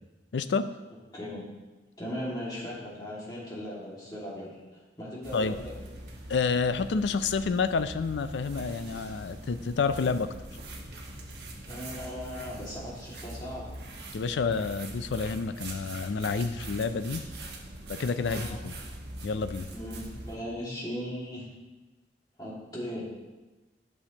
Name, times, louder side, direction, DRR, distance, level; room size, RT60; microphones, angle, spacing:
voice 1, 0.3-0.7 5.3-5.6 6.3-10.3 14.1-17.2 17.9-18.8 19.2-19.7, left 5 dB, 80° left, 11 dB, 0.4 m, -29 dB
voice 2, 1.1-1.4 2.0-5.7 11.6-13.6 18.2-18.6 19.7-21.4 22.4-23.0, equal, 20° left, -6 dB, 2.0 m, -38 dB
sound 1, 5.2-20.3, right 1 dB, 65° right, 1.2 m, -42 dB
11.5 x 6.3 x 2.9 m, 1.2 s
head